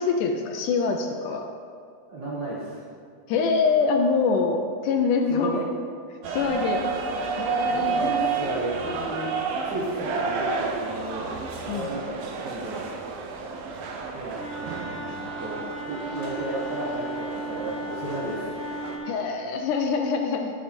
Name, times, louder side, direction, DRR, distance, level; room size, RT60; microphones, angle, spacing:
voice 1, 0.0-1.5 3.3-5.6 6.3-6.8 7.4-8.3 11.7-11.9 19.1-20.5, left 4 dB, 80° left, 4 dB, 1.9 m, -24 dB
voice 2, 2.1-2.8 5.3-5.7 7.6-9.3 9.6-11.3 11.6-12.9 14.1-18.5, right 2 dB, 55° right, -7 dB, 1.3 m, -33 dB
sound 1, 6.2-19.0, right 5 dB, 90° right, 2.7 m, -31 dB
Wind instrument woodwind instrument, 14.3-19.2, right 1 dB, 55° left, 0.7 m, -36 dB
11.0 x 7.6 x 4.3 m, 2.2 s
omnidirectional pair, 4.0 m